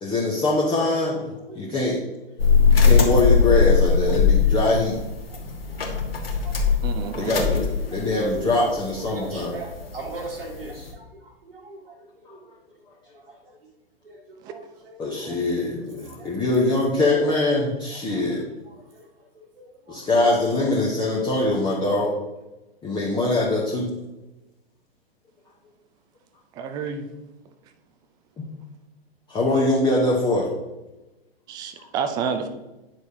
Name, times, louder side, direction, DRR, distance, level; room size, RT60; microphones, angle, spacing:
voice 1, 0.0-2.0 2.8-5.0 7.1-9.6 15.0-18.4 19.9-22.1 22.8-23.9 29.3-30.5, left 2 dB, 15° left, -4 dB, 1.0 m, -23 dB
sound 1, 2.4-10.9, left 5 dB, 70° left, 1.5 m, -21 dB
voice 2, 6.8-7.4 14.4-14.5 15.3-15.4 26.6-27.1 31.5-32.5, right 6 dB, 15° right, 7 dB, 0.4 m, -29 dB
voice 3, 9.1-10.9 11.5-11.9 14.0-14.2 14.4-14.6 14.9-15.0 15.2-15.7 16.2-16.3 18.1-18.2 19.9-20.0, right 3 dB, 75° right, -5 dB, 1.7 m, -38 dB
9.3 x 6.2 x 2.8 m, 1.0 s
figure-of-eight pair, 110°, 31 cm